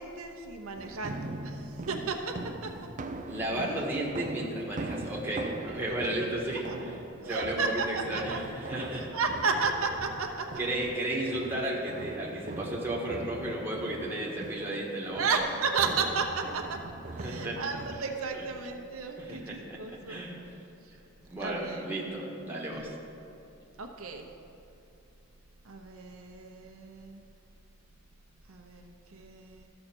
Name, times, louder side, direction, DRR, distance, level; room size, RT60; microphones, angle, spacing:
voice 1, 0.0-2.3 2.6-2.7 5.9-6.0 6.7-6.8 7.2-8.4 9.0-10.5 15.2-16.8 17.2-20.2 21.4-21.8 23.8-24.3 25.6-27.2 28.5-29.7, right 4 dB, 85° right, 2 dB, 0.9 m, -33 dB
sound 1, 0.8-18.0, right 2 dB, 40° right, 0.5 m, -41 dB
voice 2, 3.3-9.1 10.6-15.3 17.2-17.6 18.3-18.5 19.2-20.4 21.3-22.9, right 1 dB, 10° right, -4 dB, 1.6 m, -34 dB
13.5 x 6.5 x 4.5 m, 2.7 s
head